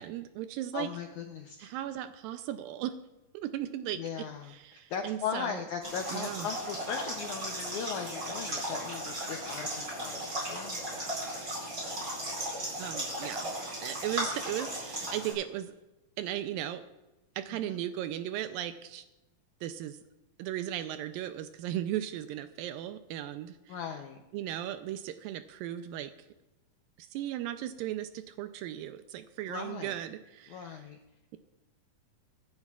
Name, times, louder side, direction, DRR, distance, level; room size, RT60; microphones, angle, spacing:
voice 1, 0.0-0.9 1.6-2.9 3.3-4.0 4.5-5.6 6.1-6.5 12.8-13.5 13.8-15.7 16.2-16.9 17.4-19.0 19.6-20.0 20.4-23.8 24.3-26.1 27.0-30.8, right 12 dB, 80° right, 10 dB, 2.2 m, -36 dB
voice 2, 0.7-1.7 4.0-10.8 13.1-13.4 17.5-17.8 23.7-24.2 29.5-30.0 30.5-31.0, left 7 dB, 80° left, 4 dB, 1.7 m, -38 dB
sound 1, 5.8-15.3, right 1 dB, 30° right, 5.3 m, -36 dB
24.0 x 10.5 x 2.4 m, 1.0 s
omnidirectional pair, 4.3 m